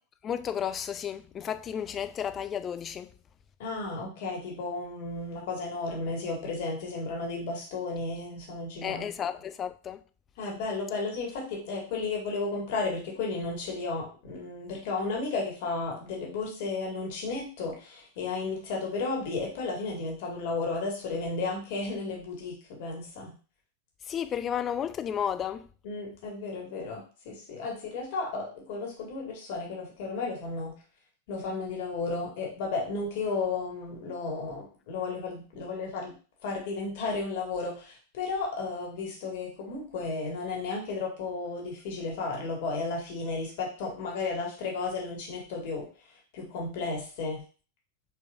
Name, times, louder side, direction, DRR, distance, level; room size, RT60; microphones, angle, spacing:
voice 1, 0.2-3.1 8.8-10.0 24.1-25.7, left 8 dB, 25° left, 0.3 m, -32 dB
voice 2, 3.6-9.1 10.4-23.3 25.8-30.7 31.3-36.1 36.4-45.9 46.3-47.4, left 3 dB, 50° left, 1.8 m, -33 dB
5.2 x 4.1 x 2.5 m
figure-of-eight pair, 90°, 0 cm